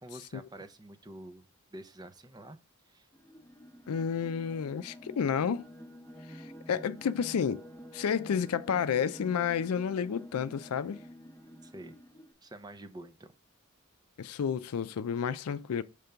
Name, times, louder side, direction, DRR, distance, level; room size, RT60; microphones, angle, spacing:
voice 1, 0.0-1.4 1.7-2.6 2.9-3.1 11.6-12.0 12.4-13.3, right 1 dB, 20° right, 0.6 m, -47 dB
sound 1, 3.1-12.3, equal, 10° left, 0.9 m, -49 dB
voice 2, 3.9-5.6 6.3-7.6 7.9-11.0 14.2-15.8, left 7 dB, 90° left, 0.4 m, -31 dB
5.2 x 3.4 x 5.6 m
head